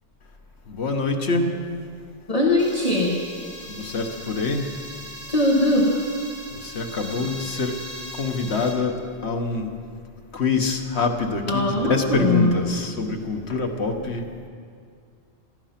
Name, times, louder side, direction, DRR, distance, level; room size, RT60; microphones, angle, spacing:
voice 1, 0.7-1.6 3.7-4.7 6.5-7.8 8.1-9.8 10.3-14.2, left 3 dB, 75° left, 4 dB, 1.5 m, -25 dB
voice 2, 2.3-3.2 5.3-6.0 11.5-12.7, left 1 dB, 35° left, -1 dB, 1.4 m, -20 dB
sound 1, 2.6-8.7, right 1 dB, 25° right, 3.2 m, -39 dB
16.0 x 14.5 x 5.9 m, 2.2 s
omnidirectional pair, 1.1 m